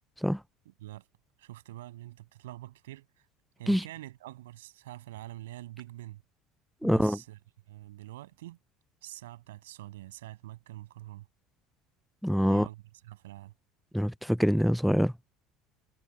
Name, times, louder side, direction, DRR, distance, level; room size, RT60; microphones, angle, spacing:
voice 1, 0.7-1.1 1.4-3.1 3.6-6.2 6.8-7.4 7.7-8.6 9.0-11.3 12.5-13.5, right 16 dB, 80° right, 7.6 m, -45 dB
voice 2, 6.8-7.2 12.2-12.7 13.9-15.1, equal, ahead, 0.3 m, -25 dB
hypercardioid pair, 70°, 0 cm